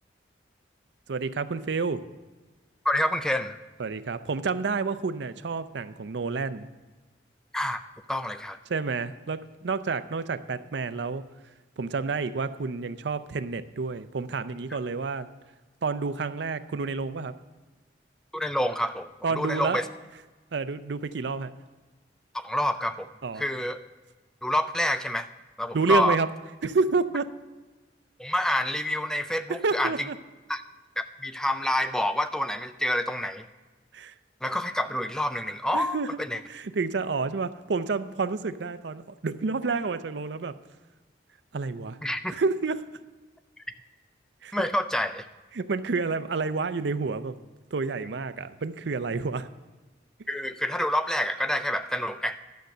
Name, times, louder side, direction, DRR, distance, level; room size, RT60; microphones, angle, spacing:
voice 1, 1.1-2.0 3.8-6.7 8.7-11.2 11.8-15.3 15.8-17.3 19.2-19.8 20.5-21.5 23.2-23.4 25.7-26.3 26.6-27.3 29.5-30.2 33.9-34.1 35.7-36.2 36.5-40.5 41.5-42.0 42.3-42.9 44.4-44.6 45.5-47.4 47.7-49.5, right 4 dB, 75° right, 12 dB, 0.5 m, -29 dB
voice 2, 2.9-3.6 7.5-7.8 8.1-8.6 18.3-19.1 19.4-19.9 22.3-23.1 23.4-23.8 24.4-25.3 25.6-26.2 28.2-30.1 30.5-30.6 31.0-33.5 34.4-36.4 42.0-42.3 44.5-45.3 50.3-52.4, left 1 dB, 5° left, 10 dB, 0.3 m, -27 dB
11.5 x 6.5 x 6.6 m, 1.3 s
head